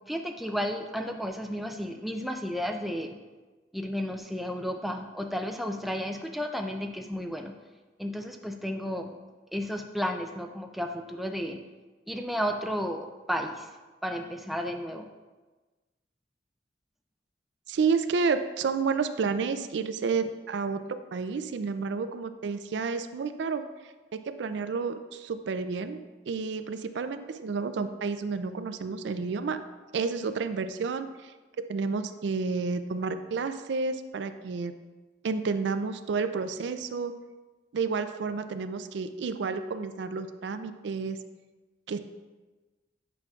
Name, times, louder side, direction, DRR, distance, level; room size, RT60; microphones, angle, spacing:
voice 1, 0.1-3.2 3.7-7.6 8.0-9.1 9.5-11.6 12.1-13.7 14.0-15.1, equal, ahead, 4 dB, 0.3 m, -33 dB
voice 2, 17.7-23.6 24.1-29.6 29.9-31.3 31.6-34.7 35.2-37.1 37.7-41.2 41.9-42.0, right 4 dB, 75° right, 10 dB, 0.4 m, -30 dB
8.8 x 5.9 x 2.4 m, 1.2 s
head